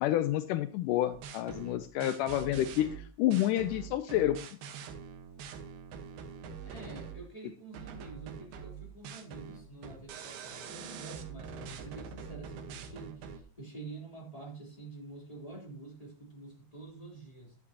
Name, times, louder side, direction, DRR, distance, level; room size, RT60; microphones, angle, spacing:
voice 1, 0.0-4.4, left 13 dB, 90° left, 11 dB, 1.8 m, -29 dB
sound 1, 1.1-7.3 7.7-13.4, right 6 dB, 80° right, 3.2 m, -44 dB
voice 2, 6.6-17.6, right 3 dB, 10° left, -2 dB, 3.1 m, -47 dB
13.5 x 9.9 x 2.9 m, 0.38 s
omnidirectional pair, 4.4 m